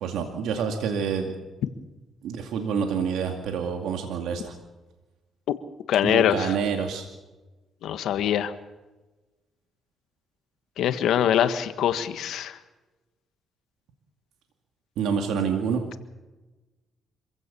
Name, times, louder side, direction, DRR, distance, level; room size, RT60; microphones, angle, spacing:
voice 1, 0.0-1.3 2.2-4.6 6.0-7.1 15.0-15.8, right 6 dB, 85° right, 4 dB, 2.3 m, -27 dB
voice 2, 5.9-6.5 7.8-8.5 10.8-12.6, left 10 dB, 80° left, 10 dB, 1.5 m, -23 dB
26.0 x 16.0 x 7.0 m, 1.2 s
cardioid pair, 90°, 0 cm